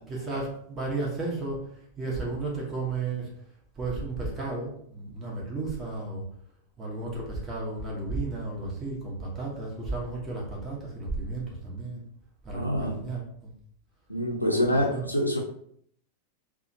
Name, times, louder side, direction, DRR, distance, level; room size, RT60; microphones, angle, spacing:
voice 1, 0.1-1.6 2.0-3.3 3.8-6.2 6.8-12.0 12.4-13.5 14.4-15.1, right 3 dB, 20° right, -4 dB, 0.9 m, -33 dB
voice 2, 12.5-13.0 14.1-15.4, equal, 90° left, 0 dB, 0.5 m, -26 dB
2.7 x 2.2 x 2.6 m, 0.66 s
figure-of-eight pair, 90°, 0 cm